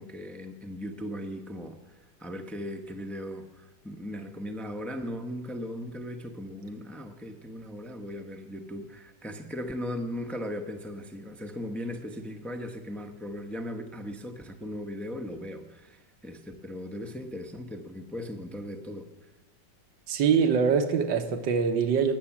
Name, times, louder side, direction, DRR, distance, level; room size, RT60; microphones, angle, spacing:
voice 1, 0.0-19.3, equal, ahead, 5 dB, 0.6 m, -38 dB
voice 2, 20.1-22.2, right 6 dB, 80° right, 8 dB, 1.8 m, -24 dB
19.5 x 7.3 x 7.3 m, 1.1 s
omnidirectional pair, 1.9 m